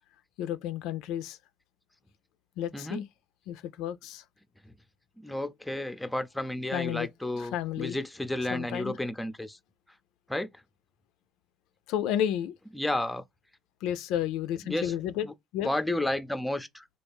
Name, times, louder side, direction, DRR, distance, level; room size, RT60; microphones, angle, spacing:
voice 1, 0.4-1.4 2.6-3.1 3.5-4.2 6.7-7.1 7.4-8.0 8.5-8.9 11.9-12.6 13.8-15.3 15.5-15.7, left 10 dB, 90° left, 0.3 m, -31 dB
voice 2, 2.7-3.0 4.6-4.7 5.2-9.6 10.3-10.5 12.7-13.2 14.7-14.9 15.2-15.3 15.6-16.9, left 1 dB, 5° left, 0.4 m, -32 dB
3.3 x 2.3 x 3.4 m
cardioid pair, 90°, 0 cm